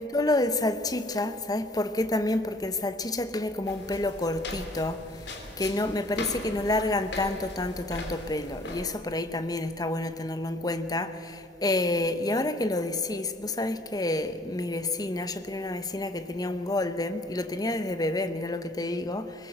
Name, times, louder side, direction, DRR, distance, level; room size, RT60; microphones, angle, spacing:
voice 1, 0.0-5.2 5.6-19.5, left 2 dB, 20° left, 0.9 m, -29 dB
sound 1, 3.7-8.8, left 2 dB, 70° left, 3.2 m, -39 dB
21.5 x 20.0 x 8.0 m
head